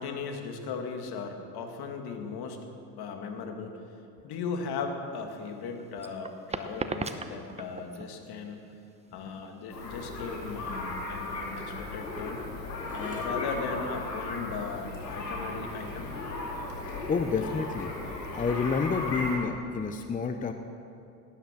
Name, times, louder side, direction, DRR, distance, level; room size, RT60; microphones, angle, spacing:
voice 1, 0.0-2.6 3.0-8.7 9.1-12.4 12.9-16.1 17.0-17.1, left 5 dB, 50° left, 4 dB, 2.1 m, -37 dB
sound 1, 5.3-11.3, right 3 dB, 15° right, 0.9 m, -39 dB
sound 2, 9.7-19.4, left 2 dB, 90° left, 2.6 m, -36 dB
voice 2, 12.9-13.3 16.8-17.9 18.3-20.5, left 5 dB, 15° left, 7 dB, 0.7 m, -30 dB
18.0 x 10.0 x 6.2 m, 2.6 s
hypercardioid pair, 65°, 48 cm